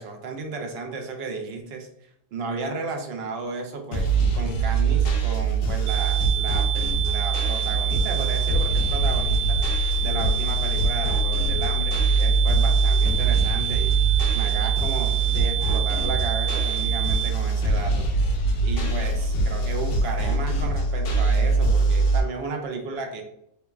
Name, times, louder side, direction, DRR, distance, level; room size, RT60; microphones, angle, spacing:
voice 1, 0.0-1.9 2.3-4.1 4.3-13.9 14.3-18.1 18.6-23.2, right 3 dB, 65° right, 4 dB, 0.8 m, -33 dB
sound 1, 3.9-22.2, right 3 dB, 80° left, 1.0 m, -23 dB
sound 2, 5.9-17.3, right 11 dB, 85° right, 0.9 m, -29 dB
3.0 x 2.2 x 2.3 m, 0.76 s
omnidirectional pair, 1.2 m